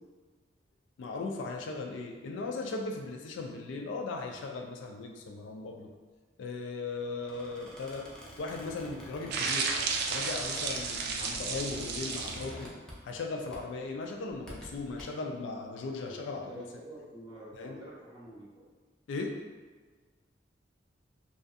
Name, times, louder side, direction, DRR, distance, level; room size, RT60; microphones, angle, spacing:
voice 1, 1.0-5.9 6.4-9.8 10.1-12.8 13.0-16.7 17.5-17.8 19.1-19.4, left 3 dB, 80° left, 3 dB, 0.3 m, -38 dB
Squeak, 7.2-13.2 13.5-13.8 14.3-15.0, equal, 5° left, 0.4 m, -47 dB
sound 1, 9.3-12.5, right 5 dB, 60° right, 0.3 m, -33 dB
voice 2, 16.1-18.5, right 1 dB, 25° right, -6 dB, 0.7 m, -47 dB
2.5 x 2.3 x 2.5 m, 1.4 s
head